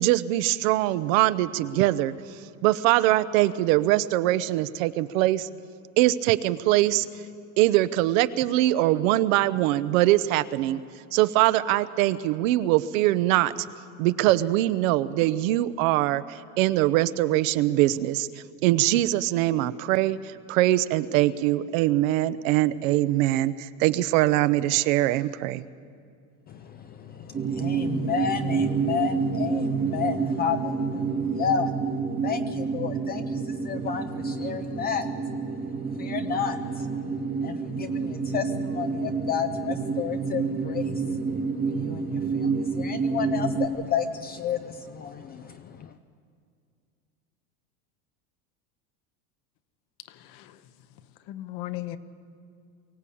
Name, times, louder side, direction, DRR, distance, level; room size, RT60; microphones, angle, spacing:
voice 1, 0.0-2.1 2.6-5.5 6.0-7.1 7.6-10.8 11.1-13.5 14.0-25.6, right 15 dB, 70° right, 0.8 m, -22 dB
voice 2, 27.0-31.7 32.2-35.1 36.0-36.9 37.4-41.3 41.6-45.9, left 8 dB, 25° left, 0.4 m, -31 dB
sound 1, 27.3-43.7, right 5 dB, 20° right, 0.9 m, -29 dB
voice 3, 50.1-50.6 51.3-52.0, left 15 dB, 50° left, 1.1 m, -37 dB
23.5 x 16.0 x 8.6 m
supercardioid pair, 150°, 42 cm